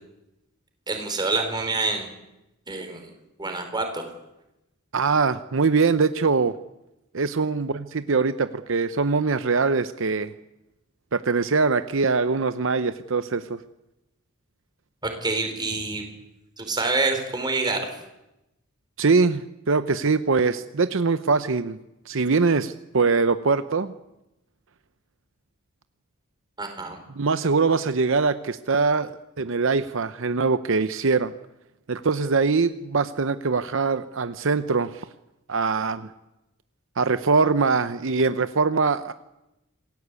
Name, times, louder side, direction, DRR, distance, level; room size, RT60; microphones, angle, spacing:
voice 1, 0.9-2.1 2.7-3.1 3.4-4.1 15.0-16.1 16.6-17.9 26.6-27.0, right 3 dB, 20° right, 4 dB, 4.4 m, -27 dB
voice 2, 4.9-6.5 7.1-10.3 11.1-13.6 19.0-21.8 22.1-23.9 27.2-31.3 31.9-35.1 35.5-36.1 37.0-39.1, right 4 dB, 65° right, 11 dB, 0.8 m, -23 dB
27.5 x 18.0 x 8.3 m, 0.93 s
head